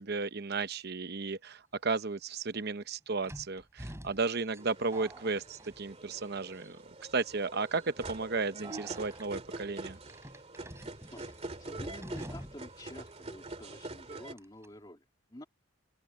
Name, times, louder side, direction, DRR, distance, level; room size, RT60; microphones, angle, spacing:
voice 1, 0.0-6.8 7.1-10.0, right 4 dB, 50° right, 0.9 m, -34 dB
sound 1, 3.2-6.2 6.5-7.0 7.7-7.9 8.6-9.3 10.1-12.8 13.1-13.2 14.4-14.7, right 1 dB, 15° right, 6.1 m, -48 dB
sound 2, 4.6-14.3, right 2 dB, 30° right, 2.4 m, -45 dB
voice 2, 11.1-15.4, left 1 dB, 20° left, 2.9 m, -50 dB
open air
head